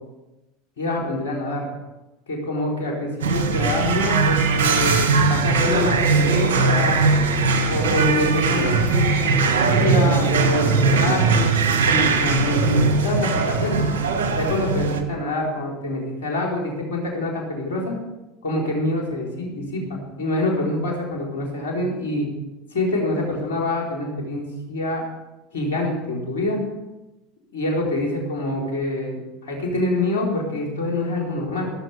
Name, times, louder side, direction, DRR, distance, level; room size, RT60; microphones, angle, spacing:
voice 1, 0.8-1.7 2.3-7.0 7.7-13.8 14.4-17.9 18.4-22.3 22.7-25.0 25.5-26.6 27.5-31.7, left 1 dB, 85° left, -2 dB, 4.5 m, -26 dB
sound 1, 3.2-15.0, right 4 dB, 80° right, 1.7 m, -20 dB
16.5 x 7.4 x 6.8 m, 1.0 s
hypercardioid pair, 85°, 0 cm